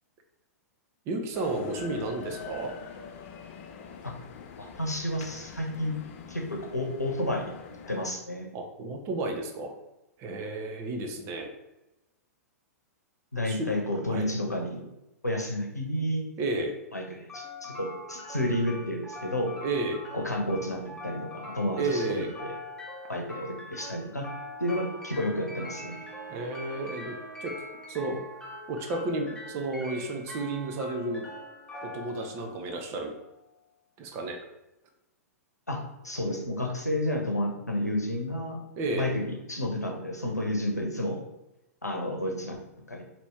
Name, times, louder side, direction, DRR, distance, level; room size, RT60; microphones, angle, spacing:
voice 1, 1.1-2.7 8.5-9.7 10.2-11.5 13.5-13.7 14.1-14.3 16.4-16.7 19.6-20.0 21.8-22.4 26.3-27.5 27.9-28.2 28.7-31.3 31.8-33.1 34.0-34.4 38.8-39.1, right 2 dB, 30° right, 4 dB, 0.7 m, -32 dB
sound 1, 1.3-8.1, left 7 dB, 45° left, 0.5 m, -45 dB
voice 2, 4.6-6.0 6.3-7.5 7.9-8.5 13.3-14.8 15.2-16.2 16.9-19.5 20.1-22.6 23.1-24.2 24.6-26.0 35.7-35.8 36.0-38.6 38.9-41.2 41.8-42.6 42.9-43.0, left 1 dB, 90° left, 1 dB, 0.8 m, -31 dB
sound 2, 17.3-33.3, left 1 dB, 10° left, 0.9 m, -43 dB
Wind instrument woodwind instrument, 24.3-28.6, right 6 dB, 90° right, 0.5 m, -51 dB
4.3 x 2.9 x 3.5 m, 0.94 s
figure-of-eight pair, 105°, 9 cm